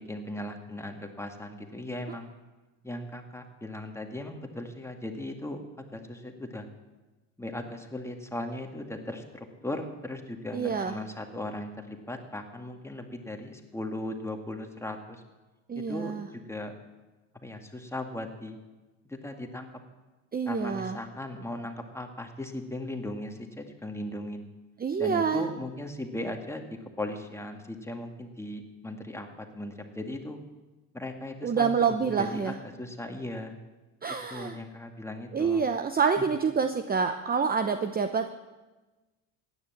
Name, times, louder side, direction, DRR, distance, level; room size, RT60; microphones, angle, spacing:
voice 1, 0.1-2.3 2.8-5.6 5.9-6.7 7.4-15.2 15.7-16.7 17.4-18.6 19.1-19.7 20.5-24.5 25.0-30.4 30.9-31.7 32.0-33.6 34.3-35.6, left 1 dB, 5° left, 4 dB, 2.1 m, -38 dB
voice 2, 10.5-11.0 15.7-16.3 20.3-21.0 24.8-25.5 31.4-32.6 34.0-34.6 35.3-38.3, right 6 dB, 20° right, 8 dB, 0.8 m, -27 dB
15.5 x 10.0 x 7.4 m, 1.2 s
supercardioid pair, 90°, 43 cm